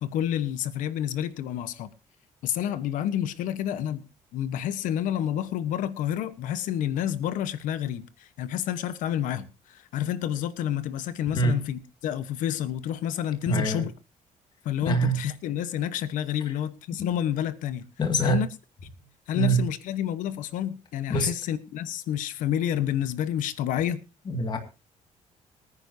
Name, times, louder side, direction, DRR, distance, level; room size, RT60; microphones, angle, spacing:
voice 1, 0.0-1.9 2.4-13.9 14.6-17.9 18.2-18.5 19.3-24.0, left 10 dB, 80° left, 1.1 m, -29 dB
voice 2, 13.5-13.8 14.9-15.2 17.0-17.1 18.0-18.4 19.3-19.6 21.1-21.3 24.3-24.6, right 2 dB, 35° left, 2.1 m, -24 dB
24.5 x 9.9 x 2.7 m
cardioid pair, 135°, 13 cm